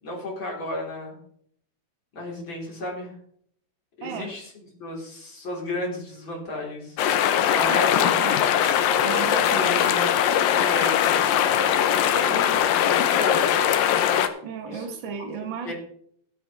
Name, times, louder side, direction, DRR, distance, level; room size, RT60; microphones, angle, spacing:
voice 1, 0.0-1.2 2.1-3.1 4.0-7.0 7.5-8.1 10.6-11.0 11.6-13.5 14.7-15.3 15.6-15.7, left 1 dB, 35° left, -2 dB, 4.6 m, -34 dB
voice 2, 4.0-4.3 7.6-8.4 9.0-10.1 14.4-15.7, right 6 dB, 65° right, 4 dB, 1.2 m, -34 dB
sound 1, 7.0-14.3, left 9 dB, 90° left, 2.6 m, -21 dB
17.0 x 9.0 x 3.4 m, 0.64 s
omnidirectional pair, 3.9 m